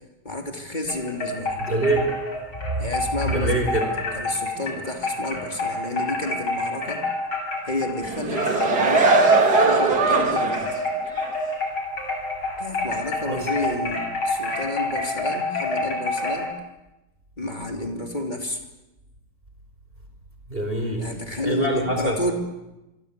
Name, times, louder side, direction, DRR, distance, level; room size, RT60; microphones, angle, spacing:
voice 1, 0.2-1.6 2.8-7.0 7.6-9.2 9.6-10.9 12.6-16.5 17.4-18.6 21.0-22.3, left 1 dB, 20° left, 3 dB, 3.3 m, -30 dB
sound 1, 0.9-8.0 8.4-16.5, left 2 dB, 85° left, 7.8 m, -28 dB
voice 2, 1.6-2.1 2.8-2.9 3.3-3.9 13.2-13.4 20.5-21.0 21.4-22.2, right 2 dB, 25° right, 3 dB, 4.6 m, -24 dB
sound 2, 8.0-10.8 11.2-11.3, right 4 dB, 50° right, 2.7 m, -20 dB
26.5 x 24.0 x 8.4 m, 0.99 s
omnidirectional pair, 2.3 m